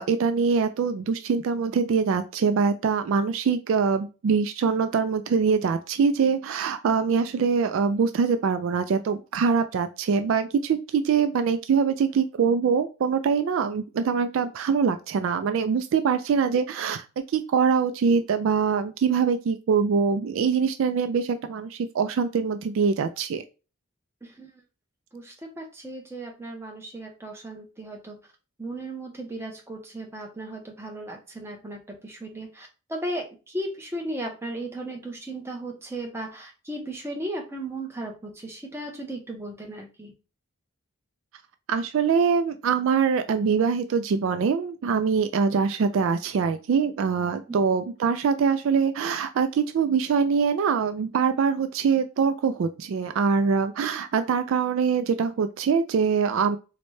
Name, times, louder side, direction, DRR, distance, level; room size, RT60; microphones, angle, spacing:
voice 1, 0.0-17.0 17.3-23.4 41.7-56.6, right 6 dB, 65° right, 10 dB, 0.3 m, -23 dB
voice 2, 25.1-28.2 28.6-40.1 47.5-47.6, right 1 dB, 10° right, 1 dB, 0.7 m, -36 dB
3.9 x 2.1 x 3.1 m, 0.32 s
head